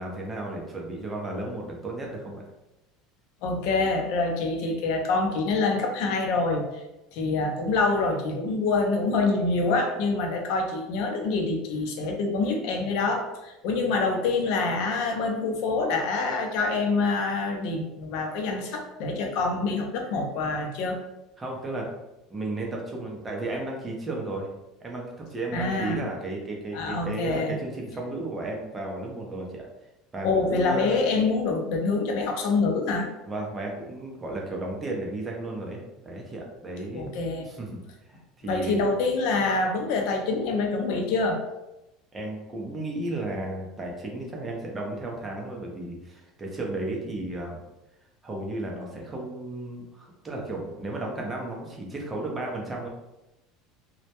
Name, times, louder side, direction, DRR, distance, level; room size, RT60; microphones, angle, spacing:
voice 1, 0.0-2.4 21.4-21.9 22.3-24.5 24.8-29.7 30.1-31.0 33.2-37.1 37.4-37.8 38.1-38.8 42.1-47.6 48.2-52.9, right 2 dB, 15° right, -1 dB, 0.5 m, -34 dB
voice 2, 3.4-6.8 7.1-21.0 25.5-26.0 26.7-27.6 30.2-33.1 36.9-37.5 38.5-41.4, left 3 dB, 65° left, 3 dB, 0.5 m, -26 dB
2.1 x 2.1 x 2.8 m, 0.94 s
cardioid pair, 150°, 0 cm